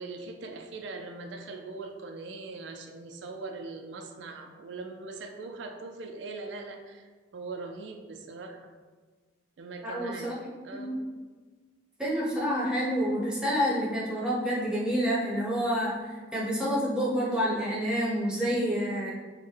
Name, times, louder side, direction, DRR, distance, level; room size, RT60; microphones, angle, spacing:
voice 1, 0.0-8.7 9.6-11.0, right 3 dB, 80° right, 4 dB, 0.4 m, -41 dB
voice 2, 9.8-10.3 10.7-11.0 12.0-19.1, equal, 5° right, -6 dB, 0.9 m, -28 dB
5.3 x 2.2 x 3.3 m, 1.4 s
head